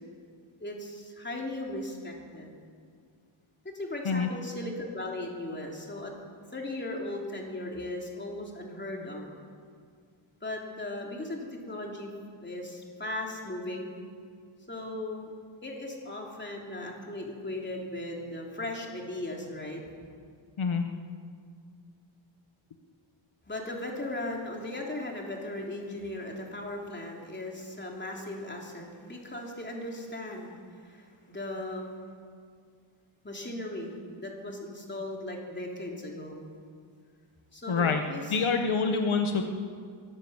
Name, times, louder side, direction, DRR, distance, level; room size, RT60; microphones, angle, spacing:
voice 1, 0.6-2.5 3.7-6.1 6.5-9.3 10.4-12.1 12.4-14.0 14.7-15.3 15.6-20.1 23.5-32.0 33.2-36.5 37.5-38.3 38.8-39.0, left 1 dB, 20° left, -1 dB, 3.3 m, -37 dB
voice 2, 37.7-38.0 38.3-39.4, left 5 dB, 75° left, 5 dB, 1.4 m, -26 dB
23.0 x 14.0 x 8.1 m, 2.1 s
wide cardioid pair, 160°, 49 cm